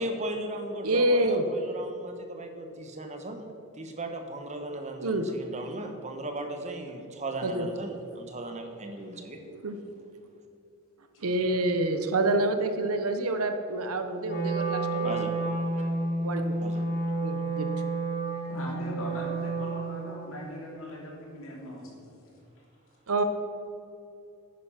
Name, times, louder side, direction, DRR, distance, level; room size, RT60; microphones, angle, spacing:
voice 1, 0.0-3.5 3.7-9.4 15.0-15.3 16.6-16.8, right 1 dB, 30° right, 5 dB, 1.2 m, -37 dB
voice 2, 0.8-1.4 5.0-5.3 7.4-7.7 9.6-9.8 11.2-15.2 16.2-16.6 17.2-17.7 23.1-23.2, right 2 dB, 75° right, 7 dB, 0.9 m, -27 dB
Wind instrument woodwind instrument, 14.2-20.2, right 2 dB, 45° left, 3.3 m, -30 dB
voice 3, 18.5-22.2, equal, 60° left, -2 dB, 3.1 m, -39 dB
10.5 x 9.6 x 5.8 m, 2.8 s
head